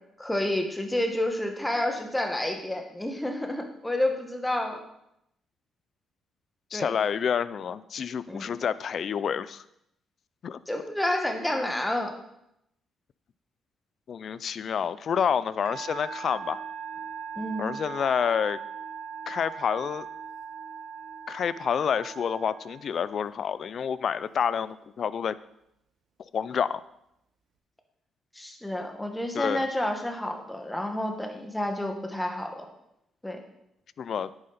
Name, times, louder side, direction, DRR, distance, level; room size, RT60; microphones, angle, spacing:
voice 1, 0.2-4.8 6.7-6.9 8.3-8.5 10.7-12.1 17.4-17.7 28.3-32.6 33.2-33.4, left 1 dB, 10° left, 4 dB, 1.8 m, -29 dB
voice 2, 6.7-9.6 10.4-10.6 14.1-16.6 17.6-18.6 19.3-20.1 21.3-25.3 26.3-26.8 29.3-29.7 34.0-34.3, left 7 dB, 55° left, 17 dB, 0.5 m, -28 dB
Musical instrument, 15.6-23.3, right 6 dB, 75° right, 1.6 m, -40 dB
10.5 x 8.9 x 4.3 m, 0.80 s
cardioid pair, 90°, 0 cm